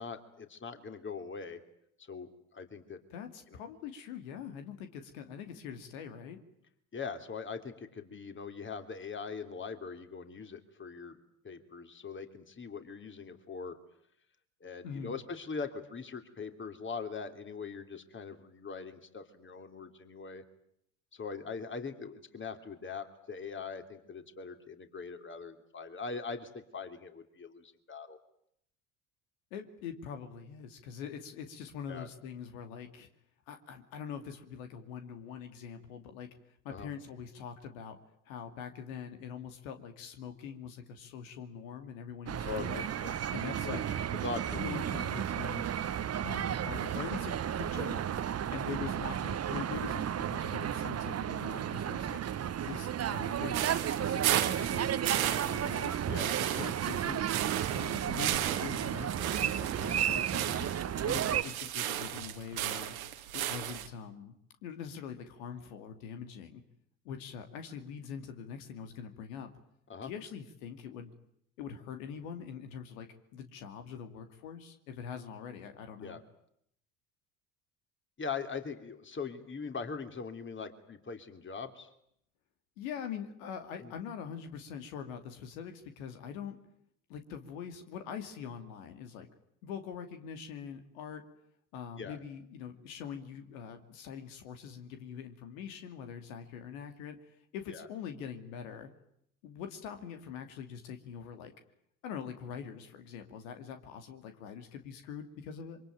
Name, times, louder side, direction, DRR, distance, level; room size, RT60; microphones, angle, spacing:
voice 1, 0.0-1.6 2.0-3.0 6.9-11.2 11.4-13.8 14.6-20.4 21.1-28.2 31.9-32.1 36.7-36.9 42.4-43.2 43.6-43.8 44.1-44.9 56.1-56.7 69.9-70.1 76.0-76.2 78.2-81.9 83.8-83.9 92.0-92.2 97.7-97.9, left 5 dB, 30° left, 8 dB, 3.3 m, -41 dB
voice 2, 3.1-6.4 14.8-15.2 29.5-33.1 33.5-36.3 36.6-38.0 38.3-42.9 43.3-43.8 44.5-45.7 46.2-48.2 48.5-52.2 52.7-56.0 56.4-57.3 57.7-60.7 61.0-62.9 63.3-64.3 64.6-66.6 67.0-69.5 70.0-71.1 71.6-73.1 73.3-76.2 82.8-86.6 87.1-89.3 89.6-91.2 91.7-98.9 99.4-101.5 102.0-105.8, left 7 dB, 75° left, 7 dB, 2.6 m, -43 dB
sound 1, 42.3-61.4, right 9 dB, 35° right, 1.3 m, -33 dB
sound 2, 53.5-63.9, right 12 dB, 85° right, 2.2 m, -35 dB
26.0 x 24.0 x 9.2 m, 0.73 s
hypercardioid pair, 70°, 41 cm